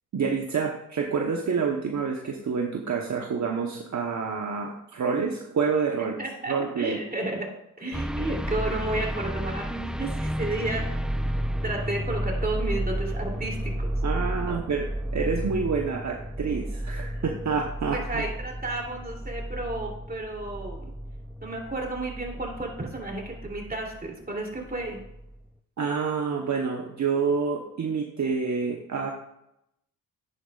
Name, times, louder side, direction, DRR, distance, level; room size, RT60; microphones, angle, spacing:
voice 1, 0.1-6.2 6.5-7.0 14.0-14.9 15.1-18.2 25.8-29.1, right 5 dB, 50° right, 2 dB, 1.1 m, -28 dB
voice 2, 6.0-7.5 7.8-10.9 11.2-11.4 11.6-14.0 14.5-14.6 17.9-20.9 21.4-25.0, right 2 dB, 25° right, 0 dB, 3.0 m, -32 dB
sound 1, 7.9-24.1 24.5-25.4, equal, ahead, 0.4 m, -32 dB
9.9 x 9.2 x 2.4 m, 0.82 s
cardioid pair, 65°, 35 cm